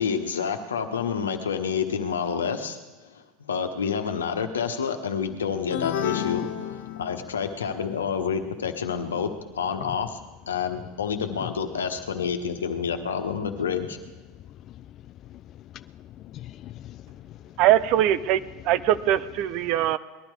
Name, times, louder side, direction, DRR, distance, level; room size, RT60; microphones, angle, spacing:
voice 1, 0.0-2.8 3.1-10.2 10.5-14.0, left 6 dB, 85° left, 5 dB, 1.2 m, -28 dB
sound 1, 5.7-7.5, left 10 dB, 65° left, 0.9 m, -31 dB
voice 2, 14.3-17.6, left 13 dB, 45° left, 13 dB, 0.4 m, -42 dB
voice 3, 17.6-20.0, right 12 dB, 55° right, 15 dB, 0.6 m, -22 dB
19.5 x 12.0 x 4.8 m, 1.2 s
hypercardioid pair, 85°, 0 cm